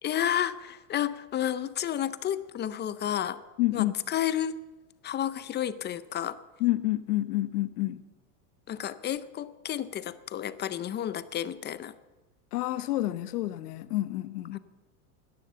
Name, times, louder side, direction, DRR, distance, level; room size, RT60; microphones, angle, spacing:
voice 1, 0.0-3.4 3.7-4.6 5.0-6.4 8.7-11.9 14.5-14.6, left 10 dB, 25° left, 0.5 m, -31 dB
voice 2, 3.6-3.9 6.6-8.0 12.5-14.6, left 16 dB, 85° left, 1.0 m, -28 dB
17.0 x 11.5 x 7.0 m
supercardioid pair, 125°, 45 cm